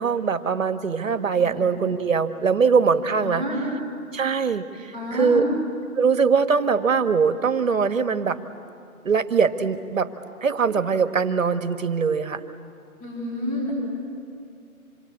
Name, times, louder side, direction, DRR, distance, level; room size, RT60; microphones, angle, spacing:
voice 1, 0.0-3.4 4.1-5.4 6.0-8.4 9.0-10.1 10.4-12.4, right 5 dB, 60° right, 9 dB, 1.6 m, -22 dB
voice 2, 3.2-3.6 4.9-5.4 13.0-13.7, left 1 dB, 25° left, -3 dB, 7.0 m, -29 dB
27.0 x 21.5 x 8.7 m, 2.4 s
hypercardioid pair, 165°, 44 cm